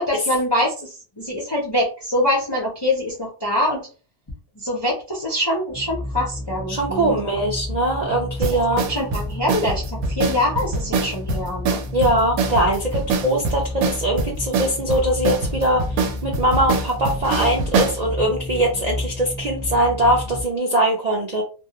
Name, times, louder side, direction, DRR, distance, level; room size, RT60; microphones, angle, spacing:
voice 1, 0.0-3.8 4.6-7.3 8.5-11.8, left 1 dB, 35° left, -3 dB, 0.4 m, -24 dB
sound 1, 5.7-20.4, left 1 dB, 5° left, 0.7 m, -31 dB
voice 2, 6.7-8.9 11.9-21.4, right 1 dB, 55° right, -2 dB, 0.4 m, -21 dB
sound 2, 8.4-18.0, right 4 dB, 85° right, 1.0 m, -24 dB
2.3 x 2.2 x 2.8 m, 0.35 s
omnidirectional pair, 1.5 m